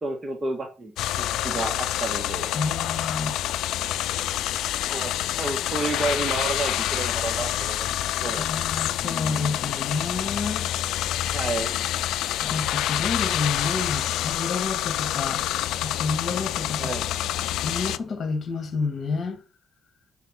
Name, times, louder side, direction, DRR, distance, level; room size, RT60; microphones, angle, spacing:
voice 1, 0.0-2.5 4.9-7.9 8.2-8.5 11.3-11.7 16.8-17.1, right 3 dB, 30° right, 1.5 m, -31 dB
sound 1, 1.0-18.0, left 13 dB, 85° left, 0.3 m, -27 dB
voice 2, 2.5-3.4 8.4-10.7 12.4-15.4 15.8-16.9 17.6-19.4, left 4 dB, 50° left, 1.5 m, -29 dB
5.8 x 4.4 x 6.1 m
cardioid pair, 90°, 0 cm